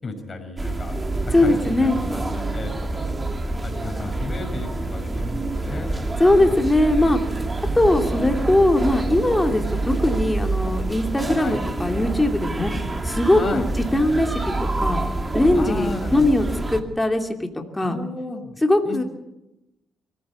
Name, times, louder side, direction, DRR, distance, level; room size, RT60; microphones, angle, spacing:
voice 1, 0.0-3.1 3.6-5.3 5.6-6.0 7.7-8.4 11.4-11.6 13.3-13.7 15.6-16.3 17.8-19.0, left 2 dB, 30° left, 4 dB, 5.7 m, -34 dB
sound 1, 0.6-16.8, right 2 dB, 20° right, 2.5 m, -27 dB
voice 2, 1.3-2.0 6.2-7.2 7.7-12.7 13.0-13.6 13.9-15.0 15.3-18.0 18.6-19.0, left 1 dB, 10° left, 4 dB, 2.6 m, -20 dB
24.0 x 15.5 x 8.3 m, 0.92 s
cardioid pair, 90°, 0 cm